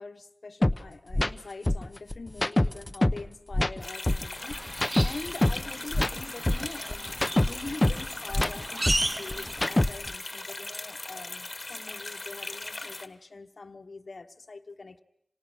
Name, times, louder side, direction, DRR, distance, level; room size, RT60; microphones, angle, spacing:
voice 1, 0.0-15.0, left 3 dB, 60° left, 1.2 m, -44 dB
sound 1, 0.6-0.8 1.1-1.3 1.7-3.2 3.5-5.6 5.9-8.0 8.3-10.2, left 1 dB, 20° left, 0.9 m, -25 dB
sound 2, 3.8-13.1, left 2 dB, 40° left, 1.8 m, -39 dB
sound 3, 4.4-9.9, right 1 dB, 30° right, 1.0 m, -35 dB
28.0 x 27.0 x 6.1 m
wide cardioid pair, 60°, 0 cm